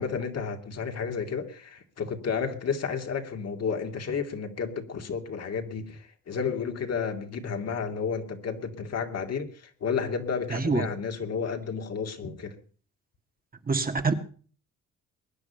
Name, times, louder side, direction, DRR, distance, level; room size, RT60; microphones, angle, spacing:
voice 1, 0.0-12.6, left 6 dB, 55° left, 2.6 m, -32 dB
voice 2, 10.5-10.9 13.7-14.1, right 4 dB, 30° right, 1.8 m, -25 dB
22.0 x 9.9 x 5.7 m
cardioid pair, 90°, 30 cm